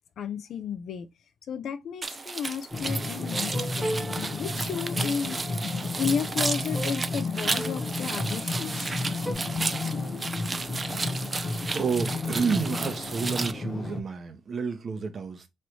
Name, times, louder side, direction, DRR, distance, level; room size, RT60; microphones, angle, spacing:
voice 1, 0.2-1.1 1.5-9.0, left 7 dB, 70° left, 0.5 m, -33 dB
sound 1, 2.0-13.5, right 3 dB, 30° right, 0.4 m, -33 dB
sound 2, 2.7-14.0, left 3 dB, 25° left, 1.1 m, -32 dB
sound 3, 3.3-4.3 6.7-7.1 7.5-8.0 9.2-9.3, right 1 dB, 5° right, 0.8 m, -35 dB
voice 2, 11.7-15.5, right 5 dB, 45° right, 0.9 m, -30 dB
3.2 x 2.7 x 4.5 m
cardioid pair, 115°, 0 cm